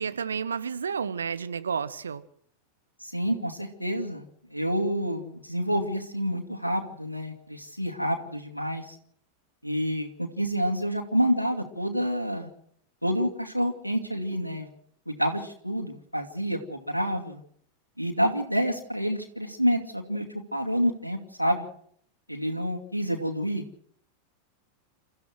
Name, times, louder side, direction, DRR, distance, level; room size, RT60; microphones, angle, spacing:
voice 1, 0.0-2.2, right 6 dB, 70° right, 13 dB, 1.3 m, -31 dB
voice 2, 3.0-4.2 4.5-9.0 9.6-12.5 13.0-14.7 15.1-17.4 18.0-20.3 20.5-21.7 22.3-23.6, equal, 90° left, 2 dB, 2.5 m, -28 dB
29.0 x 14.5 x 6.3 m, 0.63 s
figure-of-eight pair, 90°, 0 cm